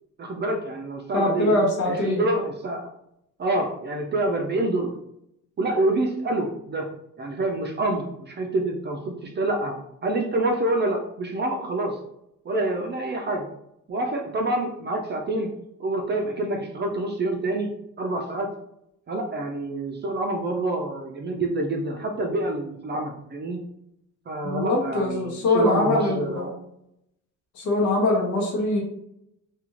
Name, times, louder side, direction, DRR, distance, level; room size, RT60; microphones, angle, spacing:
voice 1, 0.2-1.6 1.8-2.8 3.4-5.0 5.6-6.9 7.2-12.0 12.5-13.5 13.9-15.5 15.8-18.5 19.1-23.6 24.3-26.5, right 2 dB, 35° right, 2 dB, 0.4 m, -27 dB
voice 2, 1.1-2.2 24.4-26.5 27.5-28.8, left 2 dB, 75° left, -1 dB, 0.9 m, -23 dB
2.4 x 2.4 x 3.0 m, 0.78 s
cardioid pair, 90°, 30 cm